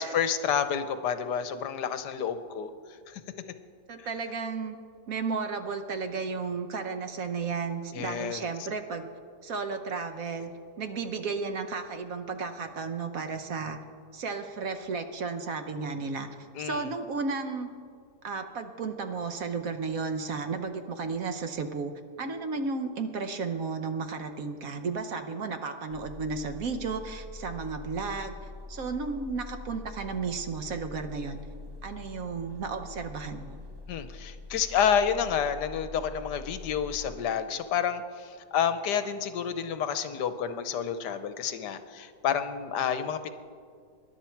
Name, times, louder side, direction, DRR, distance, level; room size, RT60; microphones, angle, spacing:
voice 1, 0.0-2.7 3.1-3.2 4.0-4.1 7.9-8.4 16.5-16.9 33.9-43.3, left 8 dB, 75° left, 10 dB, 1.3 m, -29 dB
voice 2, 3.9-4.8 5.1-9.1 9.4-10.5 10.8-13.8 14.1-16.3 16.6-17.7 18.2-21.9 22.2-28.3 28.7-31.4 31.8-33.6, right 4 dB, 60° right, 7 dB, 1.2 m, -33 dB
sound 1, 25.9-37.2, left 2 dB, 20° right, 0.7 m, -44 dB
20.0 x 11.0 x 4.5 m, 2.1 s
omnidirectional pair, 1.8 m